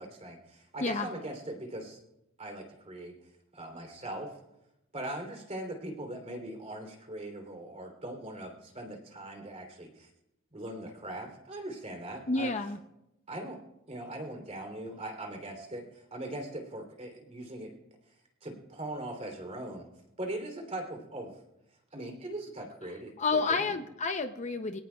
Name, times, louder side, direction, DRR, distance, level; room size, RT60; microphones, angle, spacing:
voice 1, 0.0-2.0 2.4-3.1 3.5-4.4 4.9-10.1 10.5-12.5 13.3-13.6 13.9-17.7 18.4-19.8 20.2-21.3 21.9-23.8, right 1 dB, 30° right, 2 dB, 3.2 m, -40 dB
voice 2, 12.3-12.8 23.2-24.8, left 3 dB, 35° left, 7 dB, 0.6 m, -30 dB
24.5 x 17.5 x 2.3 m, 0.88 s
head